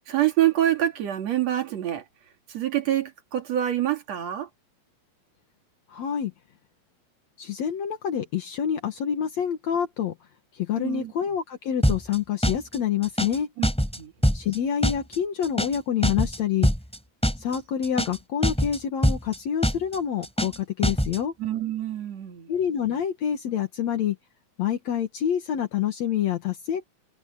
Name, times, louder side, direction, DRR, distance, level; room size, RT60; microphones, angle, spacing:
voice 1, 0.1-2.0 2.5-4.5 10.8-11.1 13.6-13.7 14.0-14.1 21.4-22.5, right 12 dB, 60° right, 3.3 m, -26 dB
voice 2, 5.9-6.3 7.4-10.1 10.5-13.5 14.3-16.7 17.4-21.3 22.5-24.2 24.6-26.8, left 9 dB, 65° left, 2.7 m, -27 dB
sound 1, 11.8-12.2 12.4-12.8 13.0-13.4 13.6-14.0 14.2-14.6 14.8-15.2 15.4-15.8 16.0-16.4 16.6-17.0 17.2-17.6 17.8-18.2 18.4-18.8 19.0-19.4 19.6-20.0 20.2-20.6 20.8-21.2, equal, ahead, 3.8 m, -23 dB
omnidirectional pair, 3.4 m